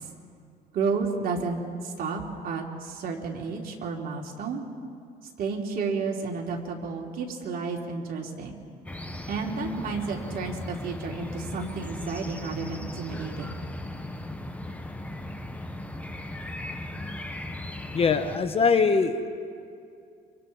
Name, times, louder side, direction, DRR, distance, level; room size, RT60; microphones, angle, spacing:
voice 1, 0.7-4.6 5.4-8.6 9.3-13.5, right 4 dB, 60° right, -1 dB, 3.2 m, -31 dB
sound 1, 8.9-18.4, left 1 dB, 10° left, 1.4 m, -37 dB
voice 2, 17.9-19.3, left 5 dB, 35° left, 9 dB, 1.2 m, -22 dB
29.5 x 26.0 x 4.2 m, 2.4 s
cardioid pair, 110°, 17 cm